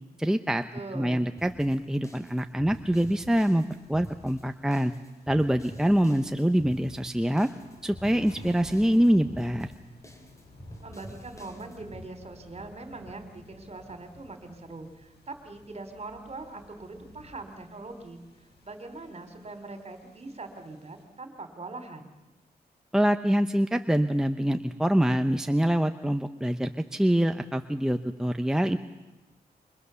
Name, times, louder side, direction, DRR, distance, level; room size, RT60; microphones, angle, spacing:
voice 1, 0.2-0.6 0.9-3.6 3.9-4.9 5.3-7.5 7.8-9.7 22.9-28.8, equal, 5° right, 7 dB, 0.8 m, -25 dB
voice 2, 0.7-1.3 10.8-18.2 18.6-22.1, right 3 dB, 40° right, 7 dB, 3.6 m, -42 dB
sound 1, 1.4-12.1, equal, 20° left, 3.9 m, -48 dB
sound 2, 2.6-21.0, left 2 dB, 80° left, 8.0 m, -54 dB
28.0 x 24.0 x 7.0 m, 1.1 s
wide cardioid pair, 95°, 17 cm